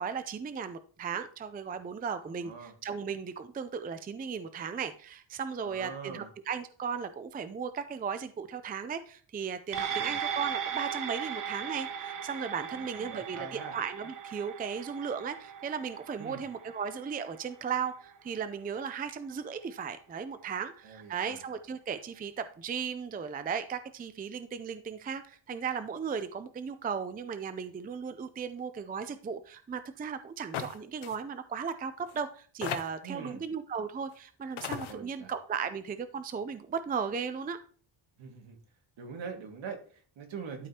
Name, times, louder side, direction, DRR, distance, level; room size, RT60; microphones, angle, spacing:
voice 1, 0.0-37.6, right 6 dB, 20° right, 11 dB, 0.4 m, -36 dB
voice 2, 2.3-2.7 5.6-6.3 9.9-10.2 12.8-13.8 16.2-16.4 20.8-21.4 33.0-33.4 34.9-35.3 38.2-38.6 39.0-40.7, right 6 dB, 70° right, 3 dB, 2.0 m, -43 dB
sound 1, 9.7-18.4 18.8-18.9, right 8 dB, 45° right, 0.9 m, -38 dB
sound 2, 30.5-30.8 31.0-31.2 32.1-32.2 32.6-33.1 34.1-34.2 34.6-34.9, left 9 dB, 85° left, 1.0 m, -36 dB
12.0 x 5.1 x 2.8 m, 0.43 s
cardioid pair, 145°, 47 cm